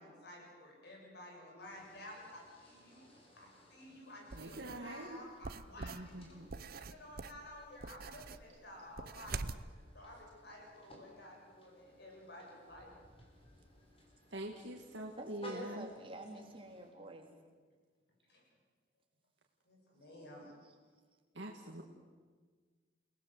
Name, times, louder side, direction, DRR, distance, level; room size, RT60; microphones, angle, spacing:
voice 1, 0.0-3.1 3.3-6.4 6.7-9.6 9.9-12.9 18.3-18.4 19.6-20.5, left 1 dB, 65° left, -1 dB, 7.7 m, -53 dB
sound 1, 1.6-16.9, left 1 dB, 30° left, 5.4 m, -59 dB
sound 2, 4.3-4.8 5.4-9.7, right 4 dB, 55° right, 0.8 m, -45 dB
voice 2, 4.3-5.2 5.8-6.6 14.3-15.9 21.3-21.8, right 1 dB, 70° right, 1 dB, 2.2 m, -45 dB
voice 3, 15.2-17.3, right 1 dB, 30° right, 2 dB, 3.7 m, -48 dB
29.5 x 19.0 x 8.0 m, 1.5 s
head